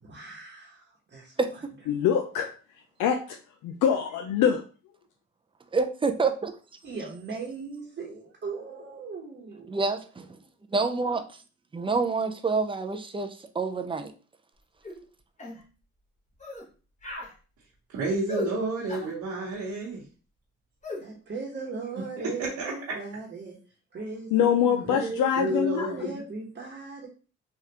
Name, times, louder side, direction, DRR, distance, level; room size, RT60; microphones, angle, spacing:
voice 1, 0.0-1.3 6.8-9.8 21.0-23.6 23.9-25.0 25.5-27.1, right 4 dB, 35° right, 1.0 m, -38 dB
voice 2, 1.9-2.5 3.0-3.4 3.6-4.6 24.3-26.1, left 8 dB, 80° left, 0.5 m, -24 dB
voice 3, 5.7-6.5 9.7-10.3 10.7-11.2 11.7-14.1, right 4 dB, 20° right, 0.4 m, -27 dB
sound 1, 14.8-15.0 15.4-15.6 16.4-16.7 17.0-17.3 18.3-18.5 18.9-19.1 20.8-21.0, left 1 dB, 25° left, 1.0 m, -36 dB
voice 4, 17.9-20.0 22.4-22.7 24.8-26.2, right 2 dB, 75° right, 1.0 m, -30 dB
3.3 x 2.4 x 2.8 m
cardioid pair, 90°, 30 cm